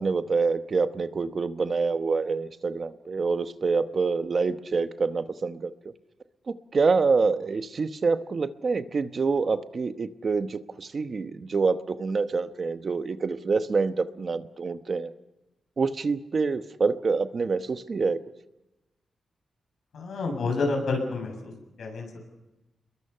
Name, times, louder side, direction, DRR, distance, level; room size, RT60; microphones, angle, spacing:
voice 1, 0.0-5.7 6.5-15.1 15.8-18.2, right 4 dB, 45° right, 10 dB, 1.0 m, -26 dB
voice 2, 19.9-21.5 21.8-22.1, left 3 dB, 80° left, 3 dB, 7.5 m, -29 dB
28.0 x 22.0 x 5.7 m, 1.0 s
wide cardioid pair, 125°, 0 cm